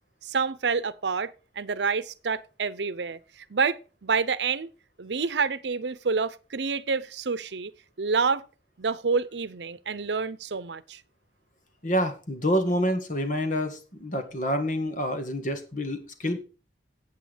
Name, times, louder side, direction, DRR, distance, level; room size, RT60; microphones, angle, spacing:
voice 1, 0.2-4.7 5.0-7.7 8.0-8.4 8.8-11.0, right 5 dB, 85° right, 0.7 m, -28 dB
voice 2, 11.8-16.4, equal, 45° left, 1.8 m, -27 dB
8.7 x 8.2 x 5.1 m
head